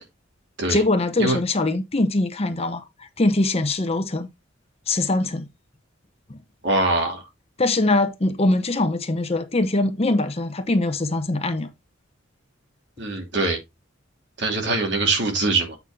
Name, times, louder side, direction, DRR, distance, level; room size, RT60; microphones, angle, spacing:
voice 1, 0.7-4.3 4.9-5.5 6.3-6.4 7.6-11.7, left 2 dB, 30° left, 0.9 m, -22 dB
voice 2, 6.6-7.2 13.0-13.6 14.4-15.8, right 2 dB, 60° right, 2.7 m, -23 dB
8.3 x 5.4 x 3.6 m
head